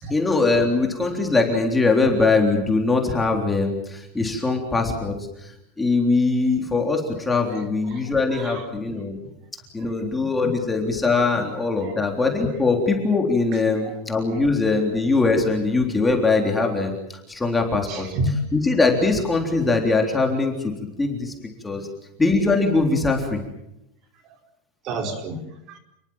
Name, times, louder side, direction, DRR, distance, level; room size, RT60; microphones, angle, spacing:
voice 1, 0.1-5.1 5.4-5.5 5.8-9.2 9.7-17.0 17.3-18.1 18.5-20.7 21.0-21.3 21.6-21.9 22.2-23.4, left 3 dB, 5° left, 2 dB, 3.6 m, -21 dB
voice 2, 7.9-9.0 9.8-9.9 10.4-10.5 11.8-11.9 13.8-13.9 17.9-18.4 24.8-25.4 25.7-25.8, right 2 dB, 35° right, 5 dB, 4.3 m, -30 dB
29.0 x 22.0 x 7.3 m, 0.85 s
supercardioid pair, 170°, 0 cm